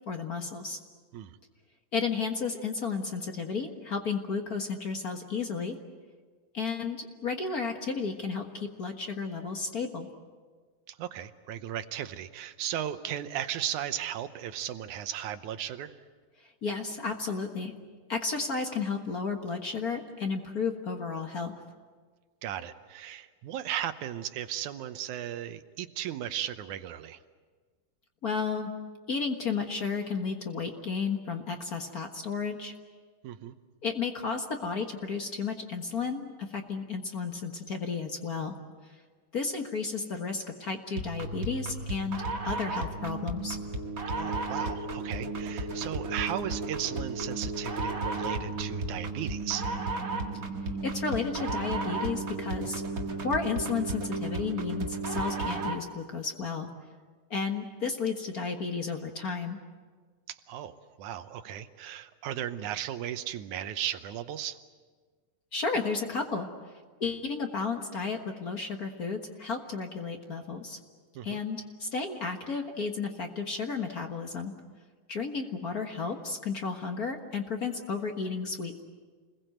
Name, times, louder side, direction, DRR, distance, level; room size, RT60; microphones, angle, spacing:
voice 1, 0.1-0.8 1.9-5.8 6.5-10.1 16.4-17.7 18.1-21.5 28.2-28.7 29.1-32.7 33.8-38.6 39.3-43.6 50.8-52.8 53.2-56.7 57.3-59.6 65.5-66.5 67.0-70.8 71.2-74.5 75.1-78.8, left 5 dB, 45° left, 4 dB, 1.1 m, -33 dB
voice 2, 10.9-15.9 22.4-27.2 33.2-33.6 44.2-49.7 60.3-64.6 71.2-71.4, right 11 dB, 70° right, 10 dB, 2.2 m, -36 dB
sound 1, 41.0-55.9, right 2 dB, 35° right, 1.5 m, -34 dB
29.0 x 21.0 x 7.9 m, 1.5 s
omnidirectional pair, 3.8 m